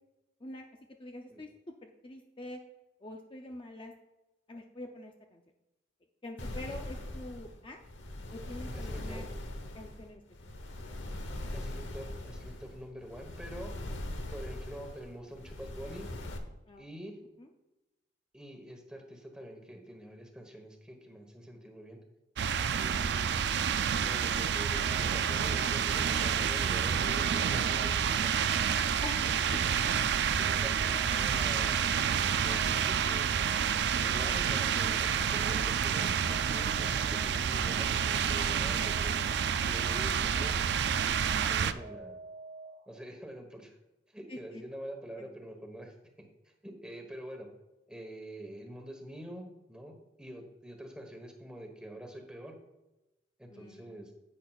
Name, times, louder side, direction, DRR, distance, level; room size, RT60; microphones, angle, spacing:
voice 1, 1.0-1.5 1.8-2.6 3.0-3.9 4.5-5.4 6.2-7.8 8.3-9.2 9.8-10.2 16.7-16.8 17.4-17.5 29.0-29.3 29.8-29.9 30.9-31.0 39.6-39.7 44.3-44.6 45.2-45.3 53.5-54.1, left 2 dB, 25° left, 3 dB, 0.5 m, -45 dB
sound 1, 6.4-16.4, left 1 dB, 85° left, 1.0 m, -41 dB
voice 2, 8.7-9.2 11.5-13.8 14.3-16.1 16.8-17.2 18.3-22.0 22.8-28.4 29.2-29.6 30.4-31.9 32.2-33.4 33.9-40.6 41.0-42.2 42.9-43.8 44.1-45.9 46.4-47.5 47.9-52.6 53.4-54.1, equal, 5° right, 3 dB, 1.2 m, -46 dB
sound 2, 22.4-41.7, right 7 dB, 60° right, 0.4 m, -29 dB
sound 3, 24.7-43.1, right 5 dB, 80° right, 1.5 m, -52 dB
10.0 x 8.3 x 2.4 m, 0.97 s
head